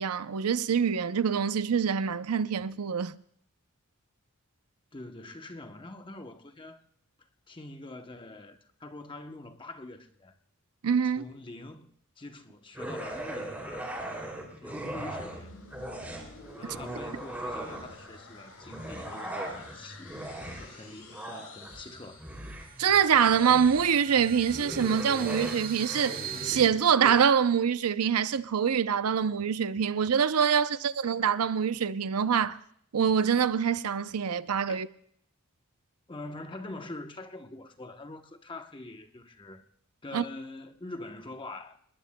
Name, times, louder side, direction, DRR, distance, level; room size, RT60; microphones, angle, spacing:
voice 1, 0.0-3.1 10.8-11.3 22.8-32.6 32.9-34.9 40.1-40.2, right 7 dB, 90° right, 0.6 m, -25 dB
voice 2, 4.9-6.8 7.5-10.3 11.0-14.0 14.6-15.6 16.6-22.2 34.7-34.8 36.1-39.6 40.0-41.8, left 2 dB, 20° left, 0.8 m, -44 dB
sound 1, 12.7-15.4 15.7-18.1 18.6-27.2, right 1 dB, 10° right, 2.7 m, -39 dB
sound 2, 14.9-22.8, left 2 dB, 90° left, 5.2 m, -49 dB
sound 3, 21.3-21.4 21.8-26.7, right 7 dB, 40° right, 1.4 m, -41 dB
27.5 x 20.0 x 2.2 m
head